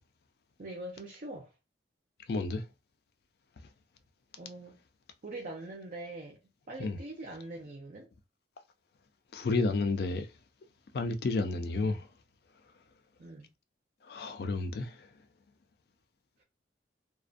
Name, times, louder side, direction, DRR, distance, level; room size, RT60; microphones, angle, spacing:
voice 1, 0.6-1.5 4.4-4.8 5.2-6.4 6.7-8.1 11.7-12.0 13.2-13.5, right 2 dB, 45° right, 0.4 m, -43 dB
voice 2, 2.3-2.6 6.8-7.0 9.3-10.3 10.9-12.1 14.1-15.1, left 3 dB, 55° left, 0.3 m, -31 dB
2.5 x 2.1 x 2.4 m
head